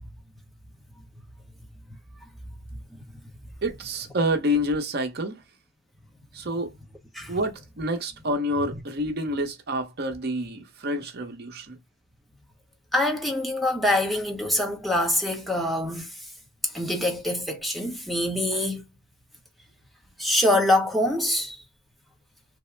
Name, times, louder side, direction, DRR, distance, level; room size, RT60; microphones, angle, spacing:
voice 1, 3.6-5.4 6.3-6.7 7.3-11.8, equal, 55° right, 0.8 m, -28 dB
voice 2, 12.9-16.1 16.7-18.8 20.2-21.6, left 1 dB, ahead, 0.8 m, -24 dB
3.5 x 2.0 x 3.1 m
head